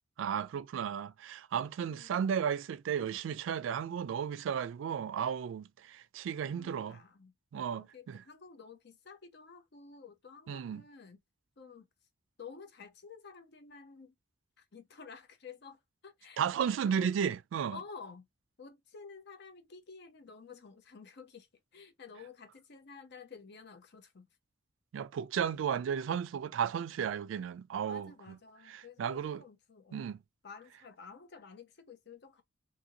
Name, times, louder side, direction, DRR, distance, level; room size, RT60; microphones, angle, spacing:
voice 1, 0.2-7.0 7.5-8.2 10.5-10.8 16.4-17.8 24.9-28.4 28.7-29.4 29.9-30.2, right 8 dB, 90° right, 0.3 m, -34 dB
voice 2, 6.5-7.3 7.6-11.2 11.6-11.9 12.4-14.1 14.6-17.1 17.7-18.3 18.6-24.3 27.8-30.2 30.4-32.4, left 5 dB, 60° left, 0.7 m, -51 dB
2.7 x 2.6 x 2.8 m
head